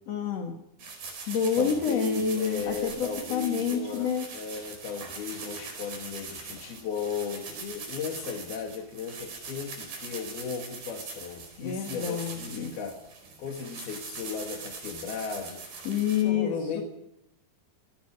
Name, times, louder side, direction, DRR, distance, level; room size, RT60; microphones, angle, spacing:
voice 1, 0.1-0.5 1.3-4.3 11.6-12.7 15.8-16.8, left 7 dB, 50° left, 3 dB, 2.8 m, -28 dB
sound 1, 0.8-16.2, right 4 dB, 70° right, 6.8 m, -42 dB
voice 2, 1.6-13.0 13.4-15.6 16.2-16.8, left 6 dB, 75° left, 1 dB, 4.0 m, -36 dB
27.5 x 20.0 x 4.9 m, 0.84 s
omnidirectional pair, 4.4 m